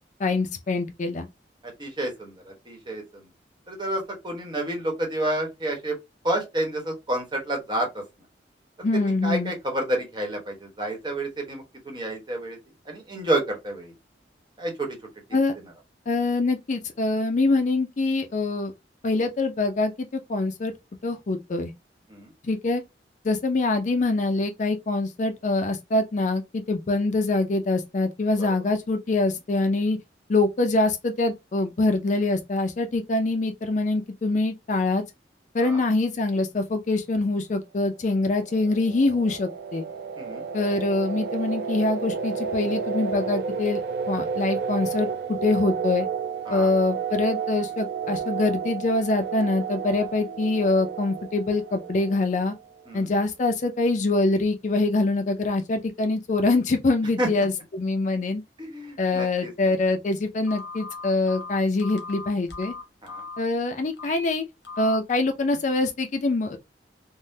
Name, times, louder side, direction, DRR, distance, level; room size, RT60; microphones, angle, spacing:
voice 1, 0.2-1.3 8.8-9.5 15.3-15.5 16.1-18.7 19.0-20.7 21.0-21.7 22.4-22.8 23.2-30.0 30.3-35.0 35.5-39.8 40.5-43.8 44.1-46.1 46.5-52.5 52.9-58.4 59.0-62.7 63.4-64.4 64.8-66.6, left 2 dB, 45° left, 0.4 m, -24 dB
voice 2, 1.8-3.3 3.7-6.0 6.2-8.0 8.9-12.6 12.9-13.9 14.6-15.0 22.1-22.3 35.6-35.8 40.2-40.4 46.5-46.7 52.9-53.1 57.2-57.5 58.6-59.7 63.0-63.2, right 1 dB, 25° right, 1.0 m, -29 dB
sound 1, 38.2-52.7, right 6 dB, 60° right, 0.4 m, -31 dB
Telephone, 60.4-63.4 63.9-64.2 64.6-65.0, left 3 dB, 70° left, 0.9 m, -38 dB
3.5 x 2.1 x 2.6 m
head